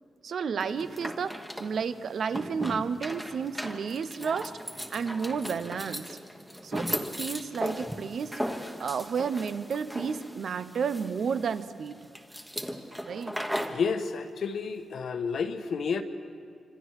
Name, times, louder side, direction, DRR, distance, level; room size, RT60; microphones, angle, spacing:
voice 1, 0.2-4.5 4.9-6.0 6.6-12.0 13.1-13.4, right 6 dB, 60° right, 12 dB, 0.8 m, -32 dB
sound 1, 0.6-13.8, equal, 5° right, 1.3 m, -37 dB
voice 2, 13.7-16.0, left 5 dB, 60° left, 7 dB, 1.3 m, -30 dB
26.5 x 26.0 x 4.9 m, 2.3 s
wide cardioid pair, 130°, 0 cm